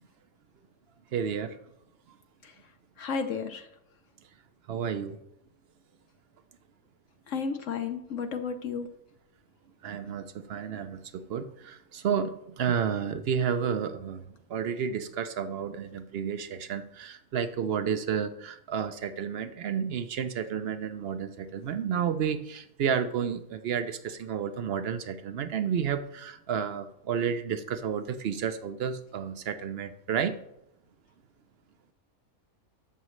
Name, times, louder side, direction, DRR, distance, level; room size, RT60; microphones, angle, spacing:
voice 1, 1.1-1.6 4.7-5.2 9.8-14.2 14.5-30.4, right 7 dB, 60° right, 11 dB, 0.6 m, -31 dB
voice 2, 3.0-3.7 7.3-8.9, left 5 dB, 65° left, 7 dB, 0.9 m, -32 dB
11.5 x 7.3 x 3.1 m, 0.79 s
omnidirectional pair, 1.5 m